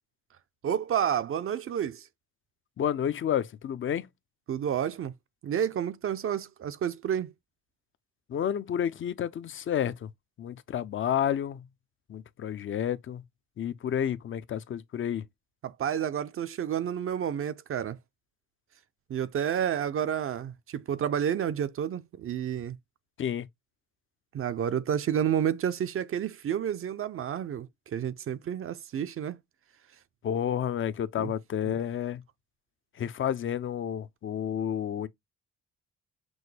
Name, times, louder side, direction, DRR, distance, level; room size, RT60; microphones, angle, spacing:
voice 1, 0.6-2.1 4.5-5.1 5.4-7.3 15.6-18.0 19.1-22.8 24.3-29.4 31.2-31.3 31.7-31.8, right 9 dB, 45° right, 0.5 m, -30 dB
voice 2, 2.8-4.1 8.3-10.1 10.4-11.7 12.1-13.2 13.6-15.2 23.2-23.5 30.2-32.2 33.0-35.1, left 9 dB, 45° left, 0.5 m, -30 dB
6.1 x 2.2 x 3.2 m
cardioid pair, 90°, 30 cm